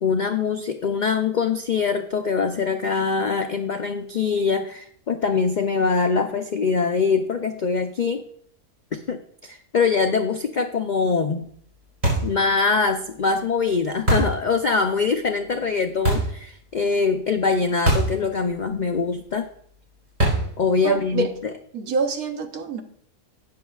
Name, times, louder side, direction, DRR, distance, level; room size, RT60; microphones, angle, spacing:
voice 1, 0.0-8.2 8.9-11.5 12.2-19.5 20.6-21.3, left 5 dB, 65° left, 0.4 m, -23 dB
sound 1, 12.0-12.4 14.1-14.4 16.0-16.4 17.9-18.2 18.5-18.6 20.2-20.6, right 1 dB, 30° right, 4.8 m, -21 dB
voice 2, 20.8-21.3 21.7-22.8, right 4 dB, 80° right, 1.4 m, -25 dB
12.5 x 9.2 x 2.4 m
omnidirectional pair, 1.5 m